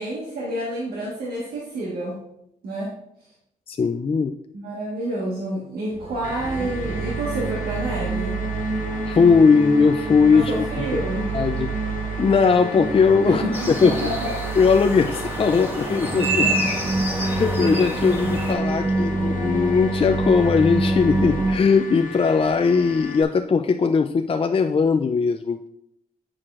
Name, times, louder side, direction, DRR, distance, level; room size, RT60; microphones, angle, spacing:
voice 1, 0.0-2.2 2.6-2.9 4.5-8.3 10.3-11.3 13.2-14.3 16.4-16.7, right 1 dB, 80° right, -5 dB, 1.4 m, -29 dB
voice 2, 3.7-4.3 9.1-10.6 11.3-11.7 12.2-14.0 14.6-16.5 17.2-25.7, left 5 dB, 35° left, 6 dB, 0.4 m, -19 dB
sound 1, 5.9-21.6, right 2 dB, 35° right, 0.8 m, -27 dB
sound 2, 6.2-23.2, left 4 dB, 55° left, 0.9 m, -37 dB
sound 3, 13.5-18.5, right 2 dB, 15° right, 1.8 m, -29 dB
7.5 x 6.1 x 2.5 m, 0.79 s
supercardioid pair, 45°, 16 cm